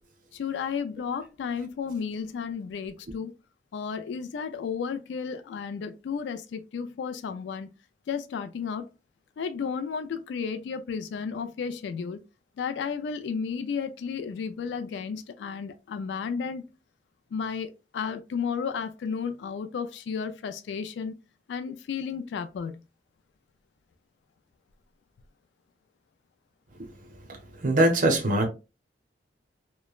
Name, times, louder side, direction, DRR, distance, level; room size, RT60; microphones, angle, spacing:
voice 1, 0.3-3.3 3.7-7.7 8.1-8.9 9.4-12.2 12.6-16.6 17.3-21.2 21.5-22.8, left 6 dB, 80° left, 0.3 m, -33 dB
voice 2, 27.6-28.5, right 1 dB, 50° right, 0.6 m, -22 dB
3.0 x 2.1 x 2.3 m
head